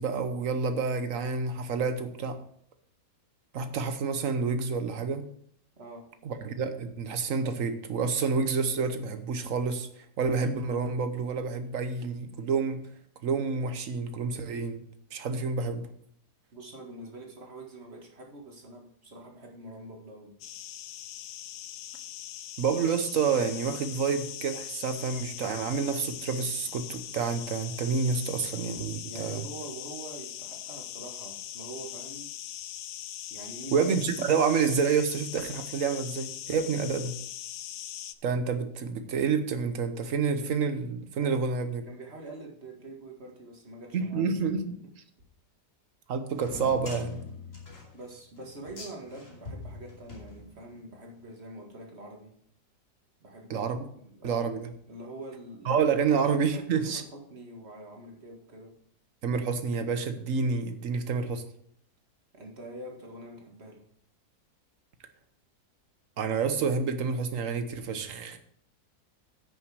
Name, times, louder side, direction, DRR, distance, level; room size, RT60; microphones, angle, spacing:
voice 1, 0.0-2.4 3.5-5.3 6.2-9.9 10.2-12.8 13.2-14.8 15.1-15.9 22.6-29.5 33.7-37.2 38.2-41.8 43.9-44.8 46.1-47.2 53.5-53.8 54.2-54.7 55.6-57.0 59.2-61.4 66.2-68.4, right 5 dB, 55° right, 8 dB, 1.2 m, -28 dB
voice 2, 16.5-20.3 29.0-32.3 33.3-33.9 41.2-41.4 41.8-44.3 47.9-52.3 53.2-53.7 53.9-54.6 54.9-58.7 62.3-63.8, right 2 dB, 35° right, 1 dB, 2.0 m, -45 dB
sound 1, 20.4-38.2, left 12 dB, 80° left, 1.2 m, -41 dB
sound 2, 46.3-50.9, left 3 dB, 45° left, 3.1 m, -43 dB
10.5 x 6.2 x 4.8 m, 0.65 s
omnidirectional pair, 1.9 m